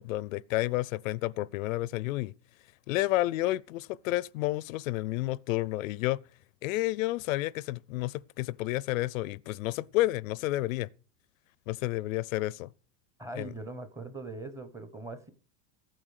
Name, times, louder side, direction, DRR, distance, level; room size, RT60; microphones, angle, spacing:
voice 1, 0.0-2.3 2.9-6.2 6.6-10.9 11.7-12.7 13.4-13.5, left 17 dB, 70° left, 0.6 m, -30 dB
voice 2, 13.2-15.3, right 2 dB, 5° right, 0.9 m, -41 dB
15.0 x 8.9 x 6.5 m
supercardioid pair, 175°, 41 cm